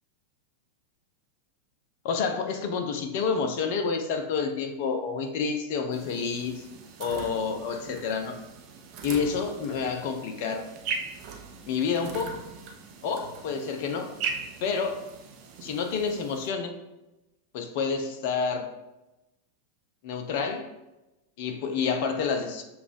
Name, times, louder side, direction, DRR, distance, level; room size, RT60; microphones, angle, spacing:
voice 1, 2.0-6.6 7.0-8.4 9.0-10.7 11.7-12.4 13.0-14.1 14.6-15.0 15.6-16.7 17.5-18.7 20.0-20.7 21.4-22.6, left 5 dB, 50° left, 5 dB, 0.5 m, -29 dB
sound 1, 5.9-16.5, right 5 dB, 40° right, 0.5 m, -40 dB
6.8 x 2.4 x 2.5 m, 0.99 s
figure-of-eight pair, 90°, 0 cm